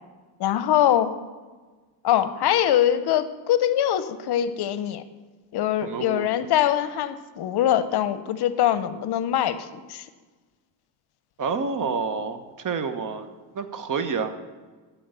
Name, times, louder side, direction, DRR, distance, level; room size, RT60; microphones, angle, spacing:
voice 1, 0.4-1.1 2.0-5.0 5.5-10.1, left 11 dB, 60° left, 13 dB, 0.7 m, -23 dB
voice 2, 5.8-6.3 11.4-14.4, right 5 dB, 45° right, 9 dB, 1.0 m, -29 dB
13.0 x 4.7 x 6.7 m, 1.3 s
cardioid pair, 100°, 46 cm